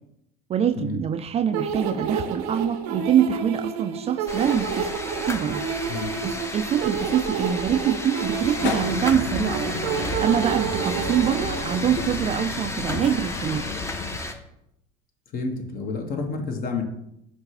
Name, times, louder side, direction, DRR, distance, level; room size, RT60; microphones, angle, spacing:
voice 1, 0.5-4.9 5.3-5.6 6.2-9.6 10.2-13.7, right 9 dB, 30° right, 10 dB, 0.4 m, -24 dB
sound 1, 1.5-12.1, right 6 dB, 75° right, 0.7 m, -30 dB
sound 2, 4.3-14.3, left 2 dB, 15° left, 0.7 m, -32 dB
sound 3, 8.6-14.2, left 5 dB, 65° left, 0.9 m, -34 dB
voice 2, 15.3-16.8, left 4 dB, 45° left, 3 dB, 1.3 m, -29 dB
5.8 x 3.2 x 5.5 m, 0.79 s
hypercardioid pair, 80°, 20 cm